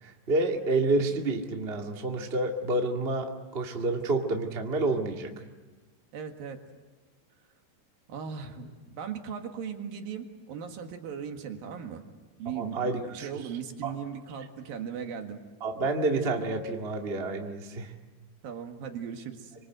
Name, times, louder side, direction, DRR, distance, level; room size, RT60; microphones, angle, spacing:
voice 1, 0.0-3.3 3.5-5.3 12.5-13.3 13.8-13.9 15.6-17.9, right 2 dB, 35° right, 2 dB, 0.9 m, -29 dB
voice 2, 6.1-6.6 8.1-12.0 12.4-15.4 18.4-19.5, right 7 dB, 60° right, 5 dB, 3.1 m, -38 dB
27.0 x 25.0 x 8.0 m, 1.3 s
omnidirectional pair, 5.1 m